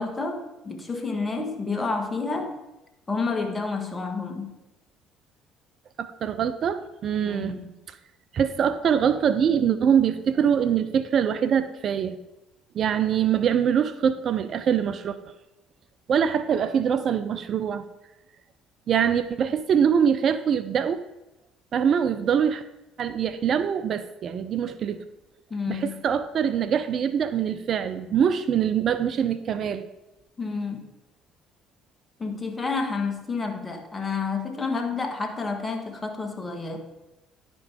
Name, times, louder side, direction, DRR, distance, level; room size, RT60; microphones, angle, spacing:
voice 1, 0.0-2.5 3.1-4.5 7.2-7.7 25.5-25.9 30.4-30.9 32.2-36.8, left 4 dB, 25° left, 4 dB, 1.6 m, -29 dB
voice 2, 6.0-7.6 8.3-12.2 12.7-15.2 16.1-17.8 18.9-21.0 21.7-22.6 23.0-25.0 25.7-29.9, right 8 dB, 50° right, 12 dB, 0.5 m, -23 dB
10.5 x 5.2 x 4.9 m, 0.97 s
hypercardioid pair, 55°, 0 cm